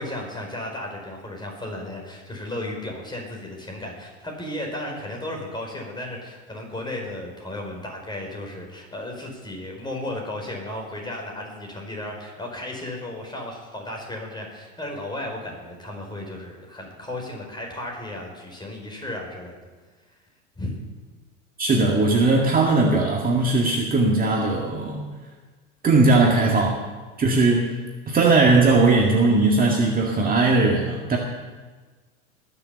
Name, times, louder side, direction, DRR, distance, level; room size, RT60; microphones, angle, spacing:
voice 1, 0.0-19.6 20.5-20.7, left 1 dB, 10° left, 0 dB, 4.8 m, -34 dB
voice 2, 21.6-25.1 25.8-26.8 27.2-27.7 28.1-31.2, right 3 dB, 25° right, -1 dB, 2.1 m, -19 dB
21.0 x 7.2 x 7.0 m, 1.4 s
hypercardioid pair, 95°, 36 cm